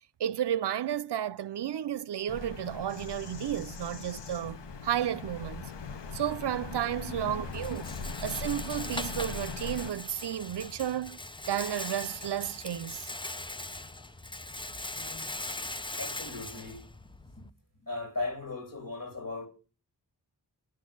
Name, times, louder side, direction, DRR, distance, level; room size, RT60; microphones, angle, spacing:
voice 1, 0.2-5.7 6.1-8.0 8.2-11.2 11.5-13.1, right 10 dB, 70° right, 0.6 m, -32 dB
Bird vocalization bird call bird song, 2.3-9.9, left 5 dB, 80° left, 1.1 m, -40 dB
Rattle, 6.5-17.5, left 2 dB, 10° left, 0.6 m, -41 dB
voice 2, 14.9-15.3 16.0-16.8 17.3-17.5 17.8-19.5, left 2 dB, 50° left, 4.0 m, -38 dB
11.0 x 6.3 x 9.2 m
wide cardioid pair, 80°, 42 cm